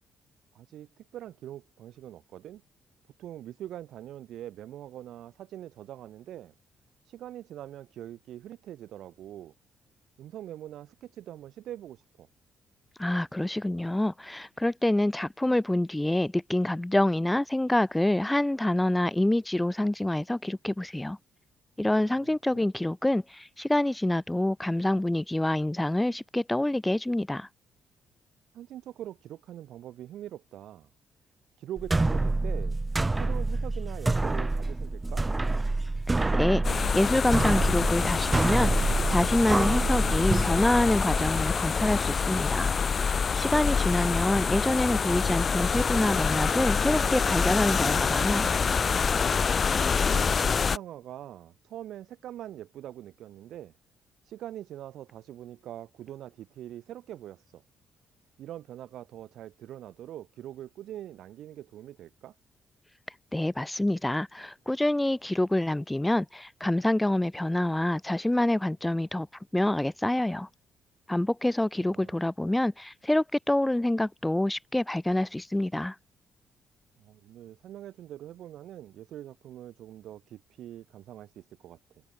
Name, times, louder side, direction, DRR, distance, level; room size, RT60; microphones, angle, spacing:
voice 1, 0.5-2.6 3.2-6.5 7.0-9.5 10.2-12.3 22.0-22.7 28.5-30.9 31.6-32.8 33.1-35.2 49.9-53.7 54.2-57.6 58.4-62.4 71.8-72.2 77.0-82.0, right 12 dB, 75° right, 5.5 m, -43 dB
voice 2, 13.0-21.2 21.8-27.5 36.1-42.8 43.3-48.6 63.3-69.3 69.5-70.5 71.1-76.0, left 1 dB, 10° left, 2.0 m, -26 dB
sound 1, 31.8-41.3, right 2 dB, 20° right, 0.8 m, -27 dB
sound 2, 36.6-50.8, left 6 dB, 40° left, 0.4 m, -26 dB
cardioid pair, 90°, 0 cm